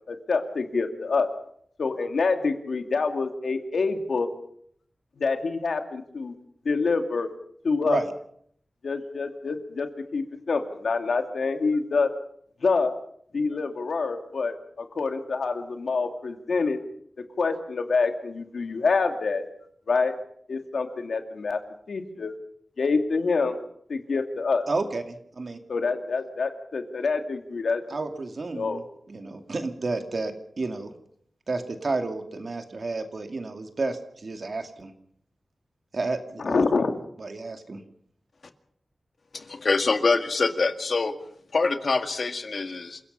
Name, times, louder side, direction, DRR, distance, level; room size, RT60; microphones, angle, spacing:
voice 1, 0.1-1.3 1.8-4.3 5.2-6.3 6.6-7.3 7.6-8.0 8.8-9.9 10.1-12.1 12.6-12.9 13.3-16.8 17.4-19.4 19.9-20.1 20.5-21.6 21.9-22.3 22.8-23.6 23.9-24.7 25.7-27.8 28.5-28.8 36.4-36.9, left 4 dB, 85° left, 5 dB, 2.4 m, -26 dB
voice 2, 24.7-25.6 27.9-28.8 29.1-30.9 31.5-34.9 35.9-36.6 37.2-37.8, right 3 dB, 55° right, 6 dB, 2.4 m, -31 dB
voice 3, 39.3-41.1 41.5-43.0, left 3 dB, 60° left, 7 dB, 2.0 m, -25 dB
28.0 x 17.0 x 5.6 m, 0.66 s
wide cardioid pair, 100°, 0 cm